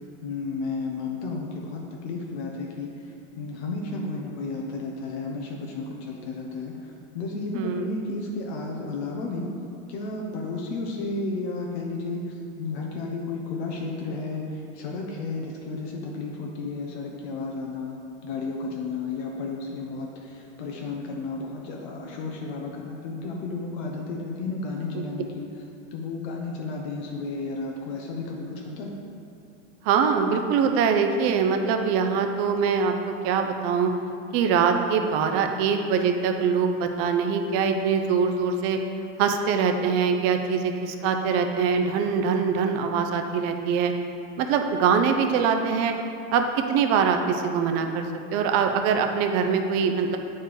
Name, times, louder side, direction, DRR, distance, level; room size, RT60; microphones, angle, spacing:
voice 1, 0.2-9.5 9.9-18.0 18.2-25.4 25.9-28.9, left 3 dB, 60° left, -1 dB, 1.0 m, -33 dB
voice 2, 7.5-7.9 24.9-25.0 29.8-33.9 34.3-38.8 39.2-43.9 44.4-45.9 46.3-48.1 48.3-50.2, right 6 dB, 40° right, 5 dB, 0.6 m, -23 dB
8.2 x 4.6 x 4.7 m, 2.6 s
supercardioid pair, 155°, 37 cm